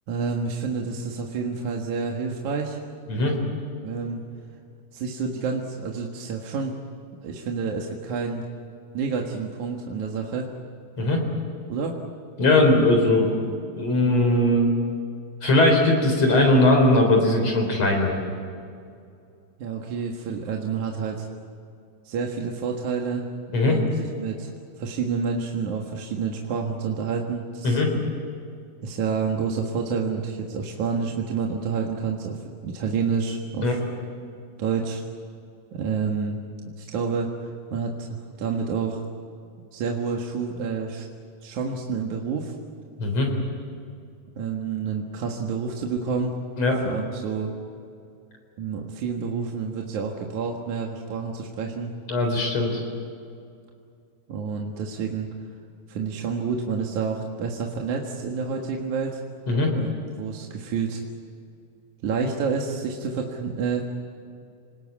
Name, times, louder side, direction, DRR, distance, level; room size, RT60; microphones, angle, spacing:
voice 1, 0.1-2.8 3.8-4.2 4.9-6.8 7.2-8.5 8.9-10.5 11.7-12.0 19.6-21.3 22.1-23.3 23.6-24.5 24.8-27.8 28.8-33.8 34.6-35.0 35.7-36.4 36.8-39.1 39.7-41.1 41.4-42.6 44.3-46.4 46.8-47.5 48.6-51.9 54.3-55.3 55.9-59.2 59.7-61.0 62.0-63.8, right 5 dB, 60° right, 1 dB, 2.8 m, -29 dB
voice 2, 12.4-13.3 13.8-14.7 15.4-18.2 23.5-23.8 27.6-27.9 33.6-33.7 43.0-43.3 46.6-46.8 52.1-52.8 59.5-59.7, left 2 dB, 45° left, 3 dB, 4.8 m, -19 dB
27.0 x 19.5 x 8.5 m, 2.4 s
omnidirectional pair, 4.4 m